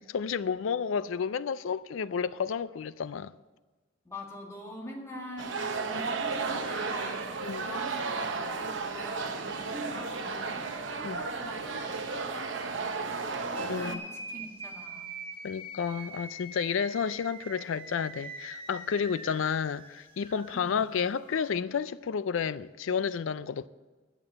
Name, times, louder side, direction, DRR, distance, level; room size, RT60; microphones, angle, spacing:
voice 1, 0.1-3.3 5.9-6.0 7.4-7.6 11.0-11.2 13.6-14.0 15.4-23.7, left 6 dB, 85° left, 0.4 m, -31 dB
voice 2, 4.1-15.1 20.5-20.8, left 1 dB, 15° left, 1.8 m, -45 dB
sound 1, 5.4-14.0, right 4 dB, 70° right, 0.9 m, -34 dB
sound 2, 13.5-21.5, right 2 dB, 25° right, 1.2 m, -44 dB
11.0 x 6.9 x 7.9 m
head